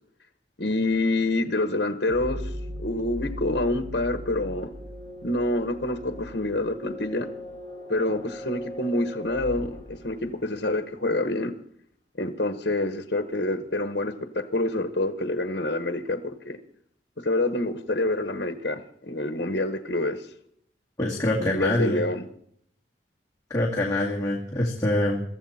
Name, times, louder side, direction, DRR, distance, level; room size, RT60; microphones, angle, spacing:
voice 1, 0.6-2.4 2.8-4.7 5.2-7.3 7.9-11.5 12.2-16.2 16.4-16.6 17.2-20.2 21.4-22.2, left 2 dB, 65° left, 1.2 m, -27 dB
sound 1, 2.1-10.7, equal, 45° right, 5.1 m, -38 dB
voice 2, 21.0-22.0 23.5-25.2, left 1 dB, 20° left, 2.2 m, -25 dB
23.5 x 14.5 x 4.3 m
head